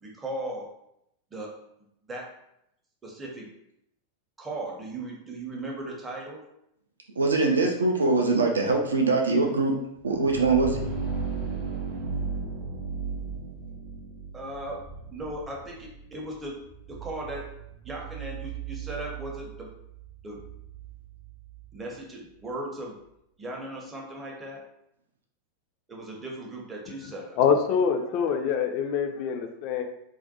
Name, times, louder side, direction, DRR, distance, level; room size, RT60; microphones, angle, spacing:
voice 1, 0.0-0.7 1.3-1.5 2.1-2.3 3.0-3.5 4.4-6.4 14.3-14.8 15.1-17.5 17.8-19.7 20.2-20.4 21.7-23.0 23.4-24.6 25.9-27.4, right 1 dB, 15° right, -1 dB, 0.6 m, -37 dB
voice 2, 7.2-9.7 10.0-10.8, right 3 dB, 70° right, 1 dB, 0.3 m, -23 dB
sound 1, 10.0-21.7, right 5 dB, 55° right, 0.8 m, -36 dB
voice 3, 27.4-29.8, left 7 dB, 45° left, 5 dB, 0.3 m, -25 dB
2.4 x 2.2 x 2.5 m, 0.79 s
figure-of-eight pair, 90°, 0 cm